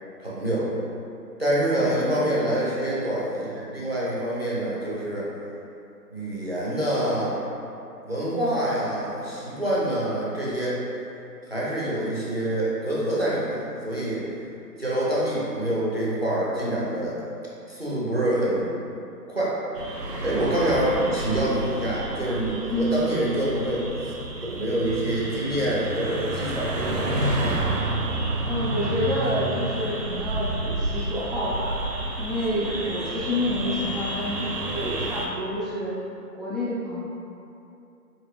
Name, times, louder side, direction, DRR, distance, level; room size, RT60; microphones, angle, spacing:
voice 1, 0.2-0.7 1.4-5.3 6.1-7.4 8.0-10.9 11.5-14.3 14.8-17.2 17.7-18.7 19.3-19.6 20.2-24.1 24.5-27.6, right 1 dB, 40° right, -7 dB, 0.6 m, -26 dB
voice 2, 1.8-2.2 22.7-23.0 28.5-31.8 32.2-35.9 36.3-37.0, left 1 dB, ahead, -8 dB, 0.3 m, -28 dB
sound 1, 19.8-35.3, right 2 dB, 80° right, 0.8 m, -30 dB
3.8 x 2.8 x 2.9 m, 2.7 s
hypercardioid pair, 180°, 48 cm